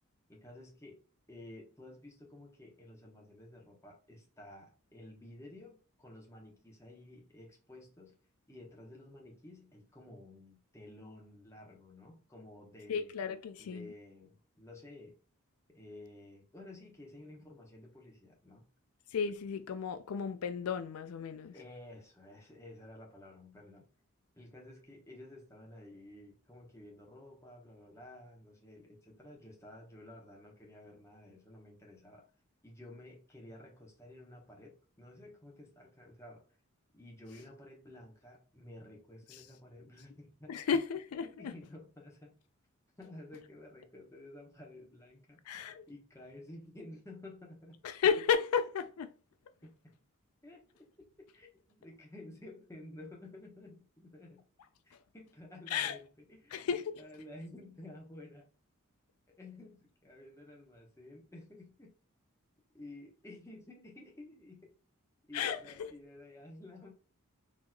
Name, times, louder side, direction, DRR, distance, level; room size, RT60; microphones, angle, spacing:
voice 1, 0.3-8.2 8.5-13.1 13.6-15.2 15.7-18.7 21.5-23.9 24.3-32.3 32.6-36.5 36.9-40.6 41.2-42.4 43.0-45.6 45.9-47.8 49.6-50.0 50.4-50.7 51.0-54.4 54.8-56.6 57.0-58.5 59.4-61.9 62.7-64.7 65.3-66.9, left 1 dB, 15° left, 0.9 m, -52 dB
voice 2, 12.9-13.9 19.1-21.5 40.5-41.5 45.5-45.9 47.8-49.1 55.7-56.0 56.5-56.9 65.3-65.9, left 7 dB, 85° left, 0.4 m, -33 dB
3.9 x 2.9 x 2.3 m
head